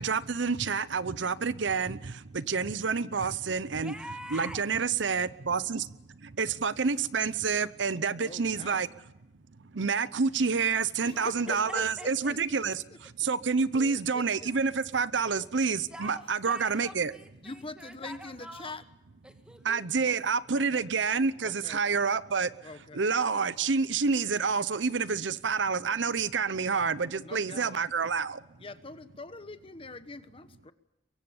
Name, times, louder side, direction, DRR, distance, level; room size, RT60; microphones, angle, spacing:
voice 1, 0.0-3.9 4.3-8.9 9.6-17.1 19.6-22.5 22.9-28.4, right 5 dB, 75° right, 0.8 m, -28 dB
voice 2, 3.7-4.6 11.1-12.3 15.9-18.7 19.2-19.8, equal, 5° right, 2.1 m, -45 dB
voice 3, 8.1-8.8 11.0-12.4 13.7-14.5 15.3-15.4 17.4-18.8 20.5-20.9 21.4-21.8 22.6-23.1 27.2-27.7 28.6-30.7, left 2 dB, 30° left, 1.2 m, -43 dB
23.5 x 23.5 x 7.2 m
head